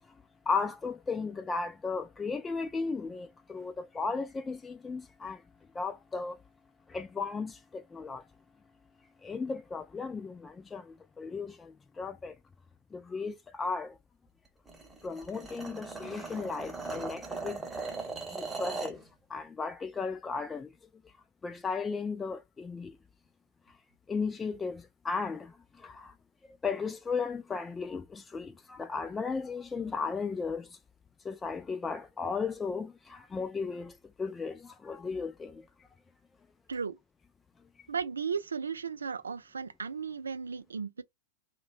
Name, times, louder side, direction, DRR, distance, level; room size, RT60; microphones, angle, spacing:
voice 1, 0.5-5.4 5.7-6.4 6.9-8.2 9.2-12.4 12.9-14.0 15.0-17.6 18.3-19.0 19.3-20.7 21.4-23.0 24.1-26.1 26.6-30.8 31.2-35.7, left 4 dB, 15° left, 0.3 m, -35 dB
sound 1, 14.7-19.0, right 3 dB, 10° right, 0.8 m, -39 dB
voice 2, 37.9-41.0, right 6 dB, 90° right, 0.4 m, -35 dB
2.6 x 2.2 x 2.5 m
hypercardioid pair, 105°, 0 cm